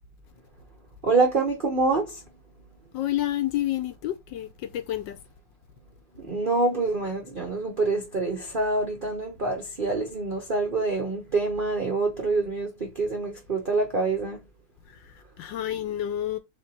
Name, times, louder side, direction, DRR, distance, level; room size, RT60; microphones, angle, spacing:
voice 1, 1.0-2.2 6.2-14.4, right 3 dB, 75° right, 0.4 m, -26 dB
voice 2, 2.9-5.2 15.0-16.4, left 12 dB, 75° left, 1.1 m, -29 dB
3.6 x 3.3 x 4.1 m
omnidirectional pair, 2.3 m